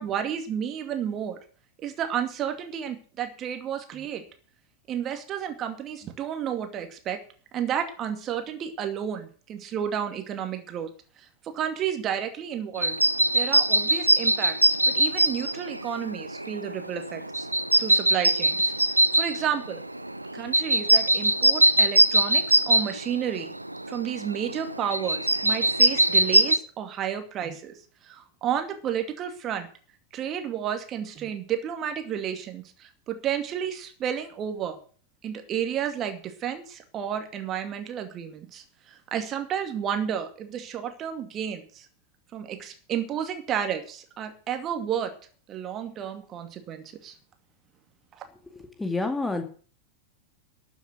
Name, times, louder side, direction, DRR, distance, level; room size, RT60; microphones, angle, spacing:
voice 1, 0.0-1.4 1.8-4.2 4.9-7.2 7.5-10.9 11.2-13.0 13.3-17.5 17.8-18.7 19.1-19.8 20.3-23.5 23.9-27.8 28.0-29.7 30.1-34.8 35.2-41.9 42.3-45.1 45.5-47.2, right 9 dB, 30° right, 6 dB, 2.4 m, -31 dB
sound 1, 12.8-26.6, right 1 dB, 85° right, 0.7 m, -22 dB
voice 2, 48.8-49.4, left 3 dB, 10° left, 5 dB, 2.2 m, -27 dB
13.5 x 7.3 x 8.2 m, 0.41 s
figure-of-eight pair, 90°, 0 cm